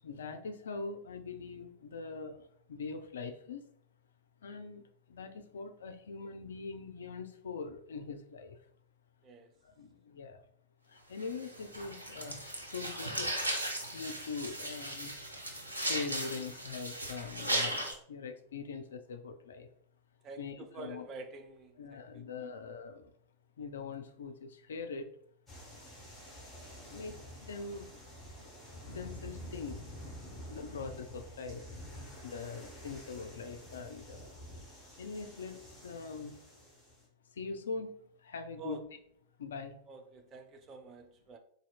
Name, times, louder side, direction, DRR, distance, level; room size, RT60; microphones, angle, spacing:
voice 1, 0.0-2.4 2.7-3.6 4.4-4.8 5.1-8.6 9.8-10.4 10.9-13.3 13.9-15.1 15.8-19.7 20.4-21.1 21.8-23.1 23.6-25.1 26.9-27.2 27.5-27.9 28.9-29.8 30.5-31.6 32.2-34.3 35.0-36.4 37.4-37.9 38.2-38.9 39.4-39.7, left 4 dB, 65° left, 0.4 m, -42 dB
sound 1, 11.2-17.9, right 1 dB, 85° right, 0.6 m, -37 dB
voice 2, 20.2-22.5 38.6-38.8 39.9-41.4, right 4 dB, 30° right, 0.5 m, -48 dB
sound 2, 25.5-37.0, equal, 10° left, 1.4 m, -49 dB
4.1 x 2.6 x 2.3 m
figure-of-eight pair, 90°, 0 cm